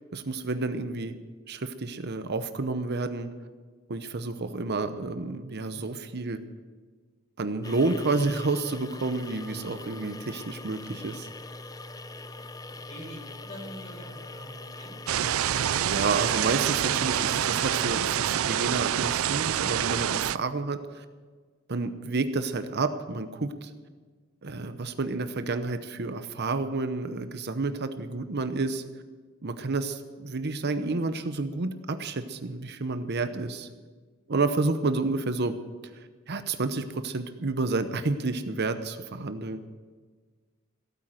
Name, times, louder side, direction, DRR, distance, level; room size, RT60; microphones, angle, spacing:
voice 1, 0.1-1.1 1.5-3.3 3.9-6.4 7.4-11.3 15.8-21.0 21.7-23.7 24.4-28.8 29.4-33.7 34.3-35.5 35.9-39.6, right 3 dB, 55° right, 9 dB, 0.8 m, -30 dB
sound 1, 7.6-17.9, left 2 dB, 15° left, 0.5 m, -42 dB
voice 2, 12.9-14.9, equal, 35° left, -1 dB, 5.5 m, -44 dB
sound 2, 15.1-20.4, right 10 dB, 85° right, 0.4 m, -26 dB
16.5 x 9.2 x 7.7 m, 1.4 s
head